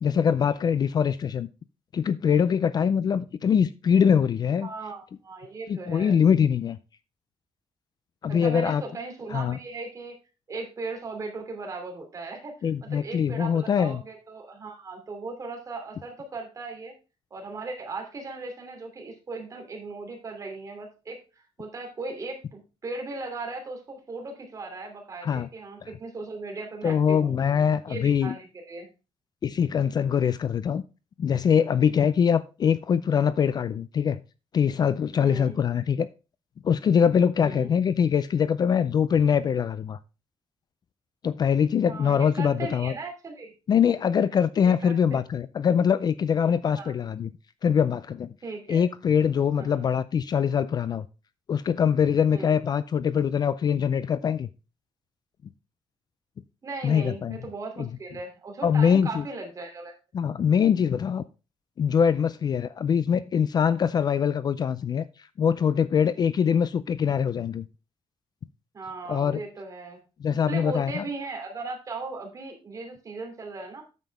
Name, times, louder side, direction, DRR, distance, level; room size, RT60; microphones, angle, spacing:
voice 1, 0.0-1.5 1.9-4.7 5.7-6.8 8.2-8.8 9.3-9.6 12.6-14.0 25.2-25.5 26.8-28.3 29.4-30.8 31.2-34.2 34.5-36.1 36.6-40.0 41.2-42.9 43.7-47.3 47.6-48.3 48.7-51.1 51.5-54.5 56.8-57.4 57.8-57.9 58.6-59.2 60.1-61.2 61.8-65.0 65.4-67.6 69.1-69.4 70.2-71.1, left 7 dB, 40° left, 0.4 m, -23 dB
voice 2, 4.6-6.2 8.3-10.2 10.5-16.9 17.3-27.3 27.9-28.9 35.2-35.6 37.4-37.7 41.9-43.5 44.6-45.2 46.7-46.9 48.4-48.8 49.6-49.8 52.3-52.5 56.6-59.9 68.7-73.9, right 3 dB, 30° right, 2.8 m, -37 dB
9.1 x 7.4 x 3.4 m
wide cardioid pair, 165°, 10 cm